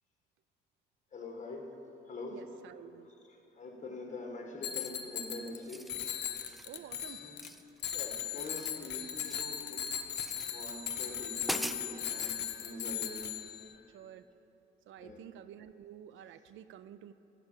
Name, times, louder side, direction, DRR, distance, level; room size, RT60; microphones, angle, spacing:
voice 1, 1.1-1.7 2.1-2.4 3.1-3.2 3.5-5.9 7.0-7.4 7.9-9.9 10.5-13.2 15.0-15.2, left 2 dB, 35° left, 2 dB, 1.7 m, -44 dB
voice 2, 2.3-3.1 6.7-7.2 13.9-14.2 14.9-17.1, right 10 dB, 75° right, 13 dB, 0.4 m, -50 dB
Bicycle bell, 4.6-5.6 5.9-7.5 7.8-13.7, left 9 dB, 60° left, 0.8 m, -38 dB
sound 1, 4.7-5.1 5.5-6.0 6.3-6.7 7.4-8.1 8.3-9.6 10.1-10.5 11.0-11.1 11.4-12.4, equal, ahead, 0.3 m, -42 dB
12.5 x 5.0 x 7.4 m, 2.9 s
cardioid pair, 90°, 20 cm